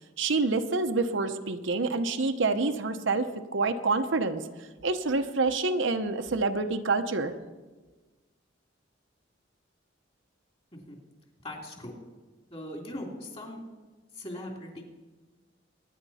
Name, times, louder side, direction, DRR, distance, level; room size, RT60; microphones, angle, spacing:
voice 1, 0.2-4.5 4.8-7.3, right 3 dB, 70° right, 7 dB, 0.9 m, -27 dB
voice 2, 11.4-12.0 12.5-13.6 14.1-14.8, left 1 dB, 30° left, 0 dB, 3.0 m, -40 dB
23.0 x 10.5 x 4.2 m, 1.2 s
head